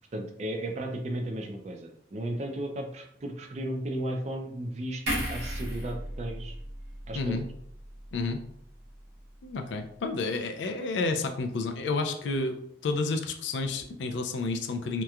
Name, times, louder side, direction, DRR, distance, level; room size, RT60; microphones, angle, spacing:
voice 1, 0.1-6.6 7.1-7.4, right 1 dB, 40° right, 3 dB, 0.4 m, -35 dB
sound 1, 5.1-8.4 8.8-9.0, equal, 80° right, 0.9 m, -36 dB
voice 2, 7.1-7.5 8.1-8.4 9.4-12.6 12.8-15.0, left 3 dB, 85° left, 5 dB, 0.4 m, -30 dB
2.9 x 2.2 x 2.3 m, 0.69 s
head